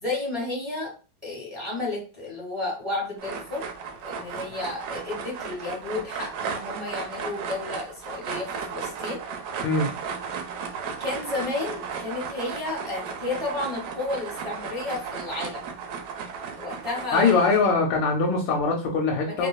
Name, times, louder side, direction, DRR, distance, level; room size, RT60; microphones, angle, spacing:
voice 1, 0.0-0.9 1.2-3.6 4.0-9.2 11.0-15.6 16.6-17.5 19.2-19.5, left 2 dB, 20° right, -4 dB, 1.0 m, -32 dB
sound 1, 3.2-17.6, right 6 dB, 80° right, 0.9 m, -35 dB
voice 2, 17.1-19.5, left 4 dB, 75° left, 0 dB, 1.1 m, -22 dB
4.4 x 2.5 x 2.2 m, 0.34 s
omnidirectional pair, 2.3 m